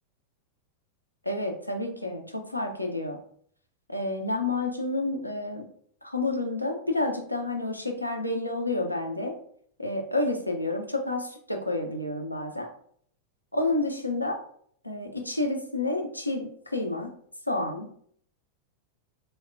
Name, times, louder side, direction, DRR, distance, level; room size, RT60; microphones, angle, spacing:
voice 1, 1.3-3.2 3.9-5.7 6.0-9.4 9.8-12.7 13.5-14.4 14.8-17.1 17.5-17.9, left 2 dB, 90° left, 3 dB, 0.4 m, -29 dB
3.0 x 2.0 x 2.4 m, 0.62 s
figure-of-eight pair, 90°, 0 cm